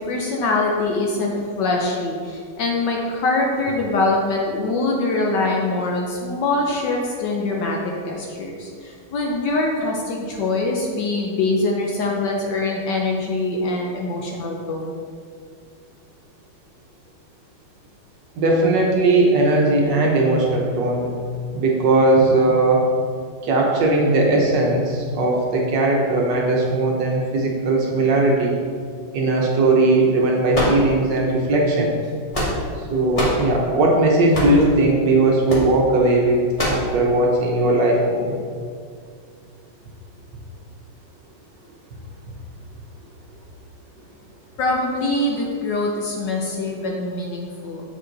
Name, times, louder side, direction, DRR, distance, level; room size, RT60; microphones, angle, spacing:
voice 1, 0.0-7.8 8.0-15.0 44.6-47.8, left 2 dB, 65° left, -1 dB, 1.2 m, -23 dB
voice 2, 18.4-21.1 21.5-22.9 23.4-28.5 29.1-32.0 32.9-38.4, right 2 dB, 65° right, -1 dB, 1.3 m, -18 dB
sound 1, 30.5-31.3 32.0-32.8 33.1-33.5 34.3-34.7 35.5-35.7 36.6-36.9, equal, 20° left, 1.2 m, -23 dB
7.3 x 4.9 x 3.9 m, 2.1 s
omnidirectional pair, 2.4 m